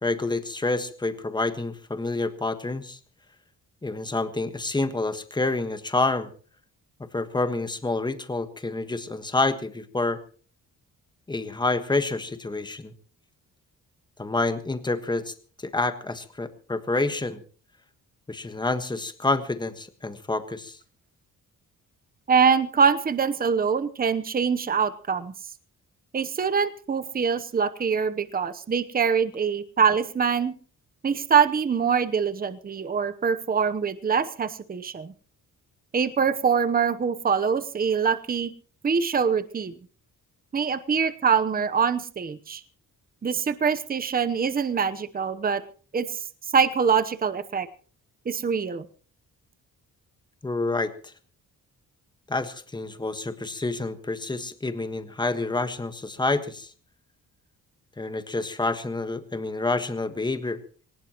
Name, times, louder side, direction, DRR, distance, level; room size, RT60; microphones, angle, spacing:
voice 1, 0.0-3.0 3.8-6.3 7.1-10.2 11.3-12.9 14.2-15.3 15.6-17.4 18.3-20.8 50.4-51.1 52.3-56.7 58.0-60.6, left 2 dB, 15° left, 9 dB, 1.4 m, -28 dB
voice 2, 22.3-25.3 26.1-30.5 31.0-35.1 35.9-38.5 38.8-39.7 40.5-42.6 43.2-45.6 45.9-46.2 46.5-47.7 48.3-48.9, right 6 dB, 25° right, 11 dB, 0.9 m, -24 dB
21.5 x 19.0 x 3.0 m, 0.41 s
cardioid pair, 135°, 34 cm